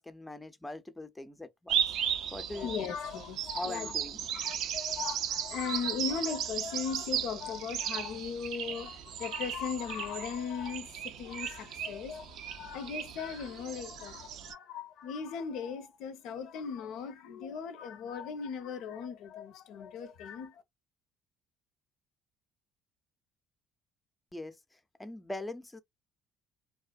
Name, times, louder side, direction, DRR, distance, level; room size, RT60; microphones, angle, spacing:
voice 1, 0.0-1.8 2.3-2.9 3.5-4.3 24.3-25.8, left 2 dB, 10° left, 0.5 m, -42 dB
sound 1, 1.7-14.5, right 9 dB, 70° right, 0.4 m, -36 dB
voice 2, 2.5-3.9 4.3-20.6, left 6 dB, 75° left, 0.5 m, -38 dB
2.5 x 2.3 x 2.2 m
supercardioid pair, 80°, 0 cm